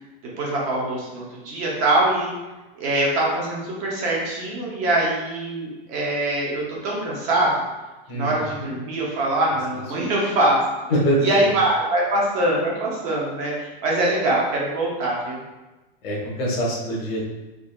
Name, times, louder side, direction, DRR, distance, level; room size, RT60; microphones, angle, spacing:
voice 1, 0.4-2.3 2.7-7.5 8.1-10.6 11.2-15.4, right 1 dB, 25° right, -4 dB, 0.6 m, -23 dB
voice 2, 8.1-8.7 10.9-11.5 16.0-17.2, right 1 dB, 85° left, -2 dB, 1.2 m, -24 dB
3.6 x 3.6 x 2.2 m, 1.1 s
supercardioid pair, 180°, 29 cm